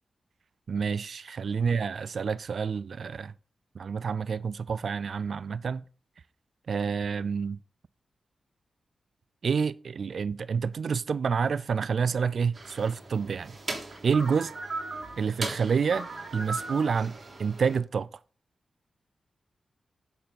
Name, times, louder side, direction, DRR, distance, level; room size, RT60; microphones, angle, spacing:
voice 1, 0.7-3.3 3.8-5.8 6.7-7.6 9.4-13.5 14.0-14.5 15.2-16.1 16.3-18.1, right 6 dB, 70° right, 0.4 m, -28 dB
sound 1, 12.5-17.8, right 3 dB, 50° right, 3.4 m, -38 dB
9.3 x 6.8 x 5.7 m
cardioid pair, 70°, 0 cm